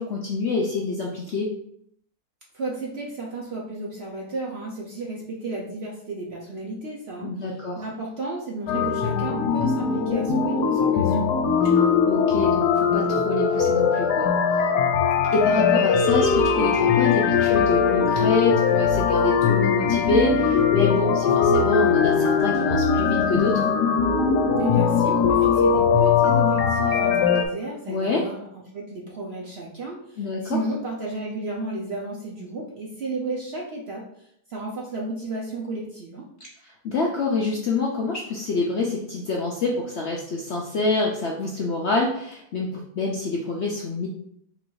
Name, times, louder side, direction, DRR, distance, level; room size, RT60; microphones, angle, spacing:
voice 1, 0.0-1.5 7.2-7.8 10.9-11.2 11.6-14.3 15.3-23.7 27.9-28.2 30.2-30.6 36.6-44.1, left 3 dB, 60° left, -2 dB, 0.7 m, -26 dB
voice 2, 2.5-7.4 7.8-11.2 24.5-28.4 28.7-34.0 34.5-36.3, right 2 dB, 55° right, -2 dB, 0.8 m, -33 dB
sound 1, 8.7-27.5, left 6 dB, 80° left, 1.2 m, -20 dB
3.9 x 2.6 x 4.5 m, 0.70 s
omnidirectional pair, 1.8 m